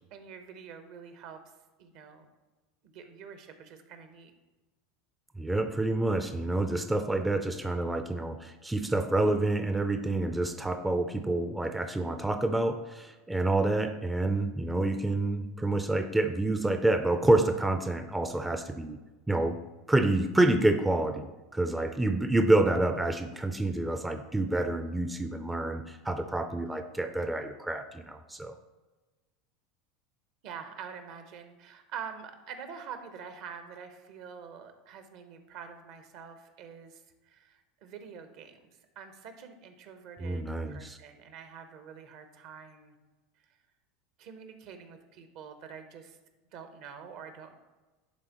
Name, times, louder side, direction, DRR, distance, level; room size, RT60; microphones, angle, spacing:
voice 1, 0.1-1.4 1.8-2.2 2.8-4.3 30.4-38.7 39.0-42.9 43.5-43.6 44.2-46.2 46.5-47.6, right 7 dB, 60° right, 7 dB, 0.9 m, -46 dB
voice 2, 5.4-19.0 19.3-19.6 19.9-28.5 40.2-41.0, right 2 dB, 10° right, 6 dB, 0.4 m, -28 dB
10.5 x 3.6 x 3.0 m, 1.2 s
hypercardioid pair, 95°, 0 cm